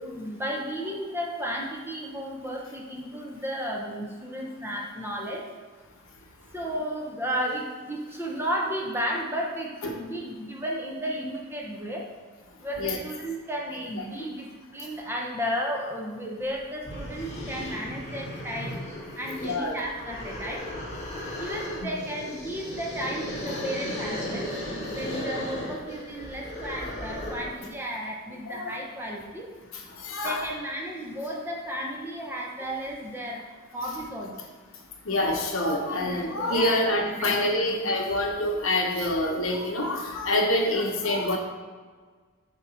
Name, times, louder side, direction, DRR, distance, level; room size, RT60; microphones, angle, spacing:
voice 1, 0.0-5.5 6.5-12.1 12.6-18.8 19.2-20.7 21.4-24.6 24.9-29.5 30.2-33.4 33.7-34.3 35.8-38.0, equal, 10° right, -1 dB, 0.7 m, -33 dB
sound 1, 16.4-16.5 16.8-27.6, left 1 dB, 30° left, 1.6 m, -36 dB
voice 2, 19.4-19.8 21.8-21.9 28.5-28.8 29.7-30.4 35.1-41.4, left 1 dB, 65° left, 1 dB, 1.1 m, -26 dB
7.8 x 3.0 x 5.6 m, 1.5 s
head